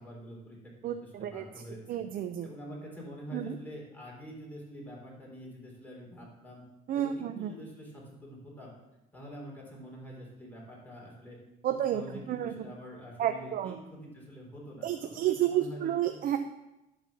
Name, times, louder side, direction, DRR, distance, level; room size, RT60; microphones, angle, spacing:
voice 1, 0.0-2.0 2.4-6.6 6.9-8.7 9.1-11.4 11.9-16.1, equal, 10° left, -3 dB, 3.8 m, -46 dB
voice 2, 0.8-1.4 1.9-2.5 3.3-3.5 6.9-7.5 11.6-12.0 12.3-12.5 13.2-13.8 14.8-16.4, right 11 dB, 60° right, 7 dB, 0.6 m, -30 dB
10.5 x 4.4 x 7.1 m, 0.95 s
cardioid pair, 110°, 17 cm